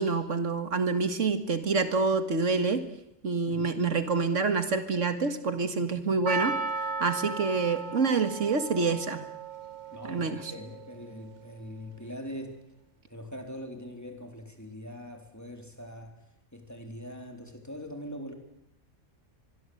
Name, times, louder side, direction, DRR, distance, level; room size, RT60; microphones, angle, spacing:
voice 1, 0.0-2.9 3.2-9.2 10.1-10.5, right 4 dB, 80° right, 9 dB, 2.0 m, -27 dB
voice 2, 3.5-3.8 9.9-12.6 13.1-16.2 16.5-18.3, equal, 15° left, 4 dB, 3.7 m, -42 dB
Percussion, 6.3-11.2, right 4 dB, 35° right, 1.5 m, -35 dB
24.5 x 22.5 x 7.9 m, 0.80 s
omnidirectional pair, 1.3 m